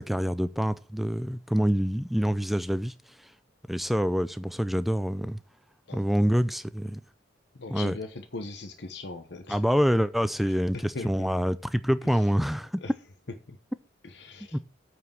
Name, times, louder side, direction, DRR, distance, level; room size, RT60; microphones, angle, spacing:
voice 1, 0.0-2.9 3.7-5.4 5.9-7.0 7.7-8.0 9.5-12.7 14.5-14.6, equal, ahead, 0.4 m, -26 dB
voice 2, 7.6-9.6 10.4-11.3 12.0-12.1 12.8-12.9 13.5-13.6 14.0-14.6, left 3 dB, 60° left, 1.0 m, -40 dB
8.3 x 4.9 x 7.5 m
head